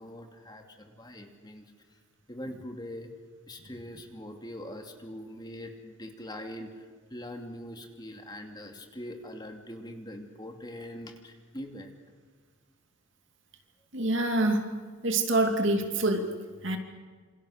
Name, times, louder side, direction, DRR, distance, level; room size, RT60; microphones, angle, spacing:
voice 1, 0.0-1.7 2.3-3.1 3.5-11.9, left 1 dB, 20° left, 3 dB, 2.6 m, -42 dB
voice 2, 13.9-14.7 15.0-16.8, right 2 dB, 60° right, 5 dB, 2.8 m, -26 dB
28.0 x 27.5 x 6.6 m, 1.5 s
head